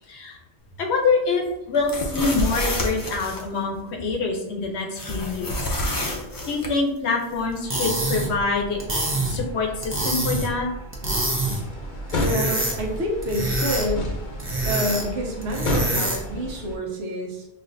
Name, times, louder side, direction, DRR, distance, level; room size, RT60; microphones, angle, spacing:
voice 1, 0.1-0.4 0.8-3.7 4.0-5.7 6.5-8.8 9.3-10.7, left 4 dB, 90° left, 2 dB, 1.0 m, -25 dB
sound 1, 1.7-3.4 5.0-6.7, left 1 dB, 30° left, 0.4 m, -28 dB
sound 2, 7.5-16.4, right 1 dB, 15° right, 0.6 m, -27 dB
sound 3, 11.0-16.8, left 1 dB, 55° left, 0.7 m, -31 dB
voice 2, 12.2-14.1 14.7-17.5, equal, 85° right, 0 dB, 1.1 m, -28 dB
5.5 x 2.5 x 2.6 m, 0.88 s
omnidirectional pair, 1.1 m